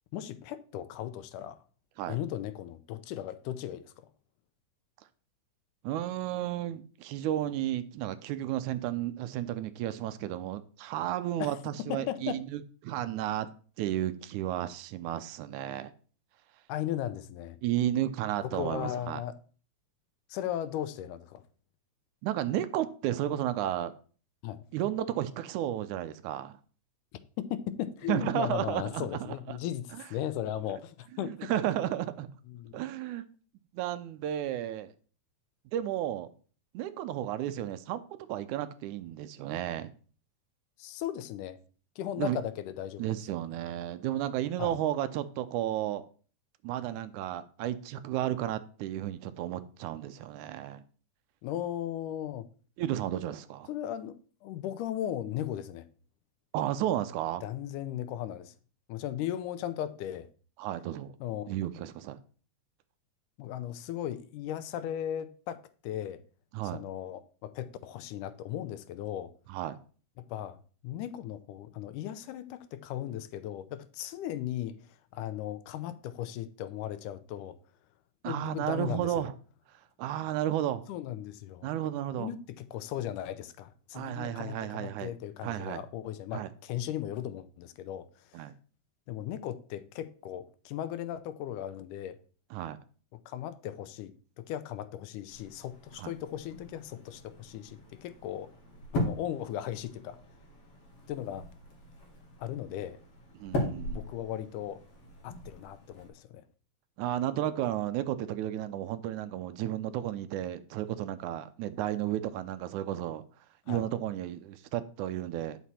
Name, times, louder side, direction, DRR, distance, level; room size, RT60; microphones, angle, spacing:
voice 1, 0.1-1.6 2.1-4.1 11.4-12.4 16.7-17.6 18.4-19.3 20.3-21.4 24.4-24.6 27.4-31.5 32.5-32.7 40.8-41.6 42.0-43.1 44.6-44.8 51.4-52.5 53.7-55.9 57.4-58.5 58.9-60.3 61.2-61.5 63.4-66.2 66.7-69.3 70.3-70.6 70.8-77.6 78.3-79.3 80.9-81.7 82.2-88.5 89.1-92.2 93.1-98.5 98.9-100.2 101.1-101.5 102.4-103.0 103.9-104.8 105.2-106.4 113.7-113.9, left 11 dB, 90° left, 2.2 m, -37 dB
voice 2, 5.8-13.5 13.8-15.9 17.6-19.2 22.2-23.9 24.7-26.6 28.1-29.3 29.9-30.0 31.2-32.3 32.7-33.2 33.7-34.9 35.7-36.3 36.7-38.0 38.3-39.9 42.2-42.4 43.0-46.1 46.6-50.8 52.8-53.7 56.5-57.4 60.6-61.1 61.5-62.2 66.5-66.8 69.5-69.8 78.2-79.3 80.0-80.9 81.6-82.3 83.9-85.1 85.4-85.8 86.3-86.5 88.3-88.5 92.5-92.8 96.0-96.1 103.4-104.1 107.0-113.2 113.7-115.6, right 12 dB, 80° right, 2.0 m, -33 dB
sound 1, 95.3-106.1, left 1 dB, 50° left, 2.8 m, -40 dB
9.2 x 6.0 x 4.2 m
omnidirectional pair, 3.6 m